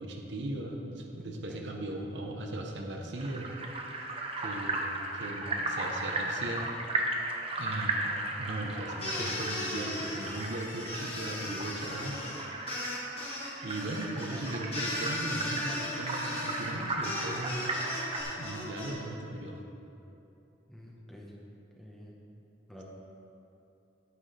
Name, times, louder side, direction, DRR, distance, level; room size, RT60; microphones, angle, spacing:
voice 1, 0.0-3.5 4.4-6.7 7.6-12.2 13.6-18.0 18.4-19.6, right 1 dB, 75° right, 1 dB, 0.9 m, -38 dB
voice 2, 1.2-1.7 20.7-21.3 21.8-22.1 22.7-22.8, equal, ahead, -4 dB, 1.1 m, -49 dB
sound 1, 3.2-18.2, right 2 dB, 30° right, 0.8 m, -36 dB
sound 2, 9.0-18.9, left 1 dB, 35° left, 1.9 m, -37 dB
9.5 x 8.9 x 3.4 m, 2.8 s
head